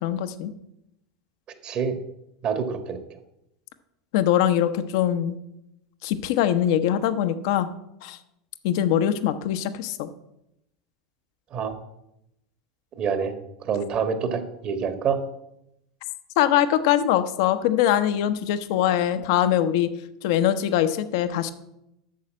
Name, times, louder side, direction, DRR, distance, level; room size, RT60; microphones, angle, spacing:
voice 1, 0.0-0.5 4.1-5.4 6.0-7.7 8.0-8.2 8.6-10.1 16.4-19.9 20.2-21.5, left 11 dB, 65° left, 12 dB, 0.8 m, -22 dB
voice 2, 1.6-2.0 2.4-3.0 11.5-11.7 13.0-13.3 13.6-15.2, right 6 dB, 45° right, 8 dB, 1.5 m, -26 dB
8.5 x 6.6 x 7.4 m, 0.85 s
hypercardioid pair, 90°, 2 cm